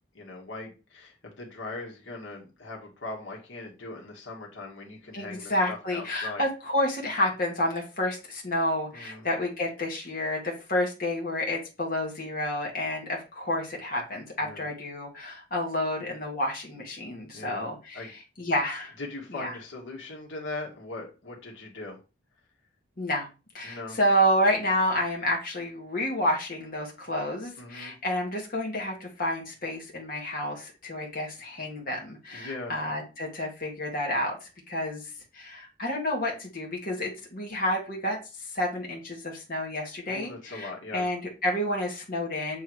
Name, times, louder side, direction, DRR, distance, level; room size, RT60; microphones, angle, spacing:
voice 1, 0.1-6.4 8.9-9.3 14.4-14.6 17.3-17.7 17.9-18.1 19.0-22.0 23.6-24.0 27.6-27.9 32.3-32.7 40.1-41.1, left 2 dB, 80° left, -1 dB, 1.9 m, -40 dB
voice 2, 5.1-18.9 19.3-19.5 23.0-23.3 23.5-35.0 35.3-42.6, left 1 dB, 50° left, -1 dB, 1.7 m, -30 dB
7.6 x 3.6 x 4.7 m, 0.30 s
head